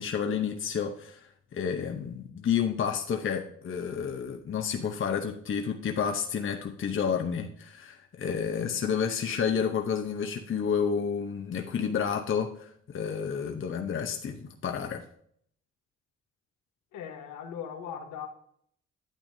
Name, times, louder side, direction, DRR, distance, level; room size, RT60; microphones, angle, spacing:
voice 1, 0.0-15.0, left 7 dB, 40° left, 0.8 m, -30 dB
voice 2, 16.9-18.3, left 8 dB, 90° left, 1.3 m, -39 dB
9.0 x 8.5 x 2.7 m
cardioid pair, 90°, 30 cm